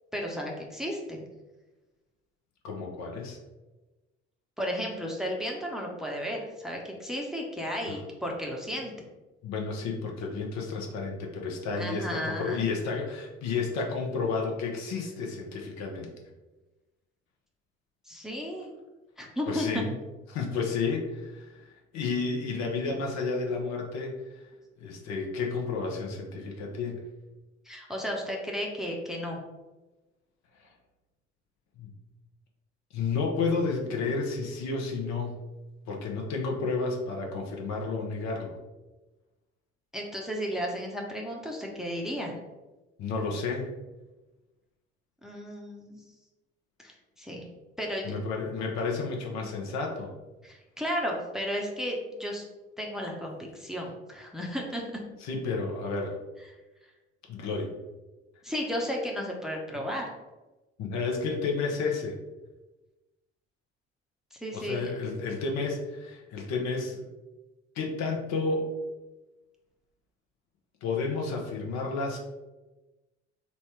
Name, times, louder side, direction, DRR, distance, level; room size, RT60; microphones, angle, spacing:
voice 1, 0.1-1.3 4.6-8.9 11.8-12.7 18.0-18.7 19.2-19.8 27.6-29.4 39.9-42.3 45.2-46.0 46.8-47.4 47.8-48.1 50.4-52.5 52.8-54.8 58.4-60.1 64.3-64.9, equal, ahead, -1 dB, 0.8 m, -34 dB
voice 2, 2.6-3.4 7.8-8.0 9.4-16.1 19.5-19.9 20.3-24.5 24.8-27.0 30.5-30.7 31.8-31.9 32.9-35.4 35.9-38.6 43.0-43.7 48.0-50.1 55.2-56.2 57.3-57.7 60.8-62.2 64.5-67.1 67.7-68.7 70.8-72.2, left 4 dB, 55° left, 1 dB, 0.9 m, -31 dB
4.1 x 2.3 x 4.5 m, 1.1 s
figure-of-eight pair, 50°, 34 cm